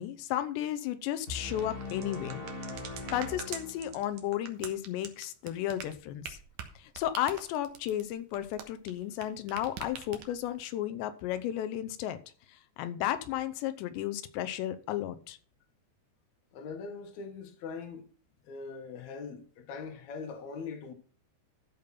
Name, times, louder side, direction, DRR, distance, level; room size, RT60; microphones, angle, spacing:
voice 1, 0.0-2.4 3.1-6.4 6.8-12.2 12.5-15.4, left 12 dB, 90° left, 3.1 m, -34 dB
sound 1, 1.3-4.2, left 2 dB, 40° left, 0.7 m, -41 dB
sound 2, 1.5-9.2 9.5-10.5, right 8 dB, 65° right, 1.9 m, -43 dB
voice 2, 16.5-18.1 18.5-20.9, left 5 dB, 55° left, 2.2 m, -41 dB
13.5 x 5.3 x 5.8 m
omnidirectional pair, 4.9 m